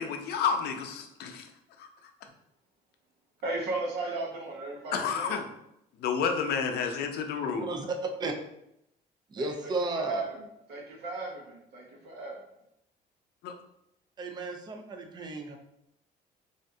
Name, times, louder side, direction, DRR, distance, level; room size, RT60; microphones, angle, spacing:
voice 1, 0.0-1.5 1.8-1.9 4.9-5.5 6.0-7.7 13.4-13.6, left 6 dB, 70° left, 5 dB, 0.4 m, -30 dB
voice 2, 3.4-5.4 9.4-12.3, right 2 dB, 75° right, -2 dB, 0.8 m, -36 dB
voice 3, 9.3-10.2 14.2-15.6, right 3 dB, 25° right, 4 dB, 0.4 m, -34 dB
2.4 x 2.1 x 2.6 m, 0.81 s
cardioid pair, 110°, 17 cm